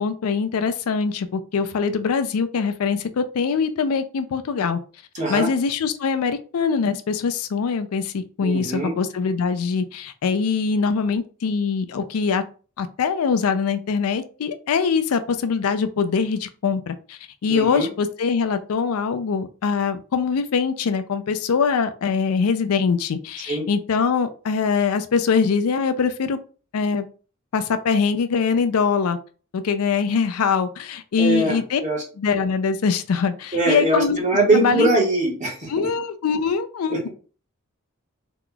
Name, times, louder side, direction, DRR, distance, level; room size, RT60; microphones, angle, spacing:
voice 1, 0.0-4.8 5.3-12.4 12.8-26.4 26.7-27.1 27.5-29.2 29.5-31.8 32.2-34.2 34.5-34.9 35.7-37.1, left 5 dB, 85° left, 10 dB, 0.4 m, -23 dB
voice 2, 5.1-5.5 8.4-8.9 17.5-17.9 23.5-23.6 31.2-32.0 33.5-35.9 36.9-37.1, right 2 dB, 35° right, -2 dB, 1.1 m, -22 dB
2.9 x 2.3 x 3.8 m, 0.38 s
head